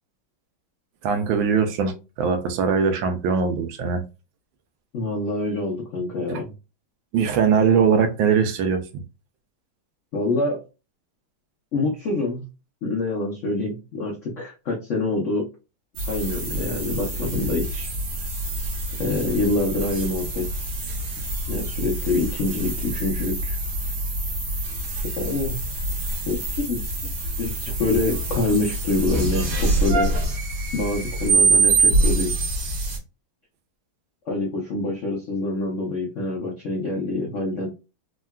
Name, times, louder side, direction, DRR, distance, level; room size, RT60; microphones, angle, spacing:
voice 1, 1.0-4.0 7.1-9.0, right 6 dB, 80° right, 8 dB, 1.3 m, -21 dB
voice 2, 4.9-6.5 10.1-10.6 11.7-12.5 12.8-15.5 16.1-17.9 19.0-20.7 21.5-23.6 25.2-25.6 26.3-26.8 27.4-30.2 30.7-32.4 34.3-37.7, left 2 dB, 75° left, -2 dB, 0.7 m, -26 dB
sound 1, 16.0-33.0, right 2 dB, 65° right, 1.4 m, -25 dB
3.6 x 2.2 x 2.2 m, 0.30 s
omnidirectional pair, 2.1 m